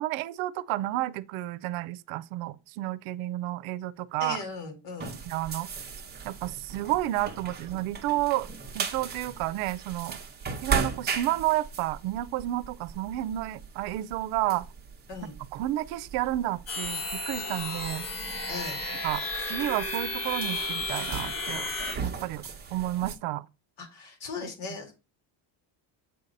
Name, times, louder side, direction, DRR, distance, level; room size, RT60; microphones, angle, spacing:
voice 1, 0.0-4.4 5.2-5.7 6.2-8.5 8.7-10.2 10.5-14.6 15.4-18.1 19.0-21.7 22.0-23.4 24.4-24.5, right 15 dB, 80° right, 0.6 m, -31 dB
voice 2, 4.2-5.2 15.1-15.3 18.5-18.8 23.8-24.9, left 4 dB, 70° left, 2.4 m, -38 dB
sound 1, 5.0-23.2, right 5 dB, 20° right, 1.0 m, -38 dB
sound 2, 16.7-22.0, left 2 dB, 40° left, 3.2 m, -33 dB
7.9 x 2.8 x 5.2 m
cardioid pair, 150°, 49 cm